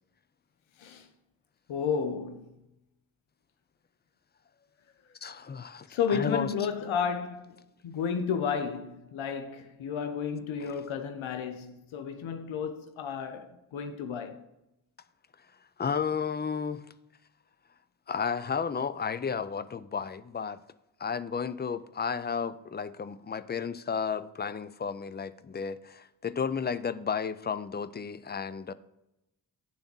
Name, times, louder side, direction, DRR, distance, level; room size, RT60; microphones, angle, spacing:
voice 1, 1.7-2.6 5.9-7.6 7.8-14.5, left 6 dB, 80° left, 0.7 m, -32 dB
voice 2, 5.2-6.5 10.6-10.7 15.8-16.9 18.1-20.6 21.0-28.7, left 6 dB, 25° left, 0.4 m, -33 dB
10.0 x 3.5 x 5.3 m
cardioid pair, 40°, 47 cm